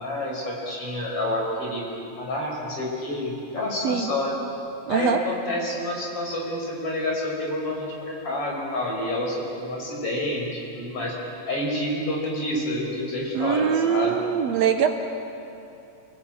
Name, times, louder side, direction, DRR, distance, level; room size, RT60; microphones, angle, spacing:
voice 1, 0.0-4.3 4.9-14.2, left 1 dB, 50° left, -2 dB, 6.0 m, -28 dB
voice 2, 4.9-5.2 13.3-14.9, right 7 dB, 65° right, 6 dB, 2.2 m, -22 dB
28.0 x 19.5 x 8.8 m, 2.8 s
omnidirectional pair, 3.3 m